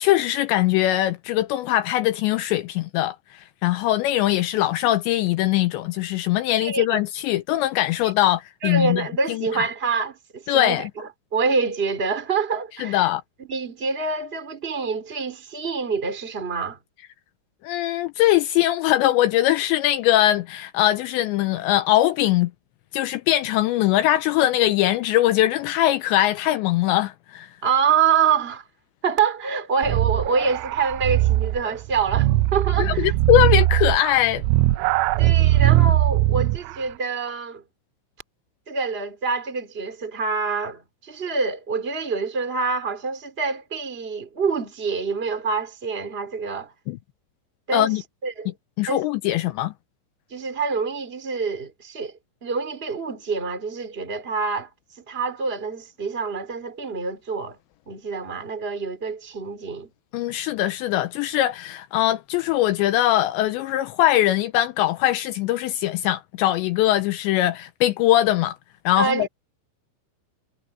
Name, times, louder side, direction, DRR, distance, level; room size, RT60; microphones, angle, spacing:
voice 1, 0.0-9.7 10.5-10.9 12.8-13.2 17.6-22.5 22.9-27.6 32.8-34.4 46.9-47.0 47.7-48.0 48.8-49.7 60.1-68.6 68.9-69.3, left 14 dB, 85° left, 2.6 m, -21 dB
voice 2, 6.6-7.0 8.6-13.0 13.5-16.8 27.6-28.6 29.0-33.1 35.2-37.6 38.7-46.7 47.7-47.9 48.2-48.5 48.9-49.0 50.3-52.1 52.4-54.7 55.1-57.6 57.9-59.9 69.0-69.3, right 5 dB, 15° right, 3.0 m, -26 dB
sound 1, 29.8-36.7, right 16 dB, 85° right, 3.3 m, -20 dB
omnidirectional pair, 5.8 m